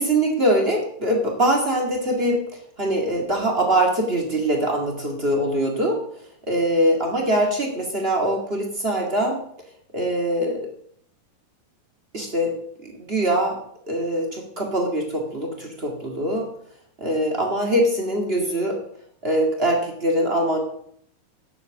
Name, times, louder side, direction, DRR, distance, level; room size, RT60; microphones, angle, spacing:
voice 1, 0.0-2.4 2.8-6.0 6.5-9.4 9.9-10.7 12.1-12.5 12.8-13.6 13.9-16.5 17.0-18.8 19.2-20.6, right 1 dB, 35° right, 1 dB, 1.0 m, -22 dB
11.0 x 7.0 x 7.0 m, 0.66 s
omnidirectional pair, 4.6 m